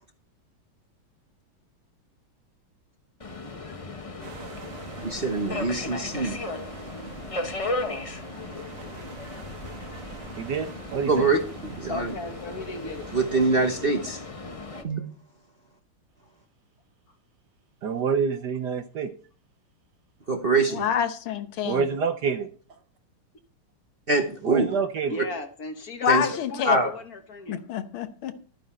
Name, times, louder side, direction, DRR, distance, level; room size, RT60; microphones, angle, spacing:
Subway metro underground, 3.2-14.8, left 2 dB, 30° left, 0.6 m, -36 dB
sound 1, 4.2-13.7, right 5 dB, 80° right, 2.4 m, -45 dB
voice 1, 5.0-6.4 11.1-12.1 13.1-14.2 14.8-15.0 20.3-20.9 24.1-24.7 26.1-26.3 26.6-26.9, right 3 dB, 35° right, 1.0 m, -24 dB
voice 2, 10.4-11.2 17.8-19.1 21.6-22.5 24.4-25.1, right 6 dB, 60° right, 1.2 m, -27 dB
voice 3, 11.9-13.3 25.1-27.6, left 3 dB, 50° left, 1.5 m, -37 dB
voice 4, 20.7-21.9 26.0-26.8 27.5-28.3, left 9 dB, 75° left, 1.8 m, -27 dB
13.5 x 9.2 x 4.4 m
omnidirectional pair, 2.4 m